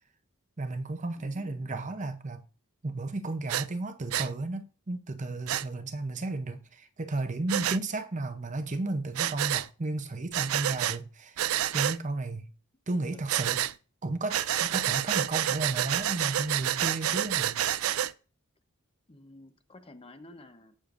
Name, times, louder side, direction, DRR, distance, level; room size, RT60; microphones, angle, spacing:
voice 1, 0.6-2.4 2.8-12.5 12.9-13.7 14.0-17.6, right 2 dB, 35° right, 0.7 m, -33 dB
voice 2, 1.2-1.9 13.1-13.2 19.1-20.7, left 2 dB, 25° left, 0.9 m, -51 dB
Breathing, 3.5-3.7 4.1-4.3 5.5-5.6 7.5-7.8 9.1-9.7 10.3-11.0 11.4-12.0 13.3-13.7 14.3-18.1, right 12 dB, 75° right, 0.4 m, -28 dB
17.5 x 6.6 x 2.5 m
head